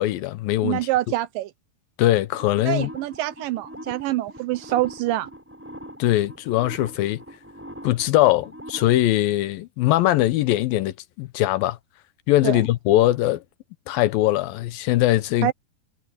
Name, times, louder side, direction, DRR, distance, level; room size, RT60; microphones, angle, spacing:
voice 1, 0.0-0.9 2.0-2.9 6.0-7.2 7.8-11.8 12.3-13.4 13.9-15.5, left 15 dB, 80° left, 2.5 m, -21 dB
voice 2, 0.6-1.5 2.7-5.3 12.4-12.6 15.4-15.5, right 15 dB, 80° right, 2.1 m, -25 dB
sound 1, 2.3-8.9, equal, 5° right, 7.7 m, -42 dB
omnidirectional pair, 4.3 m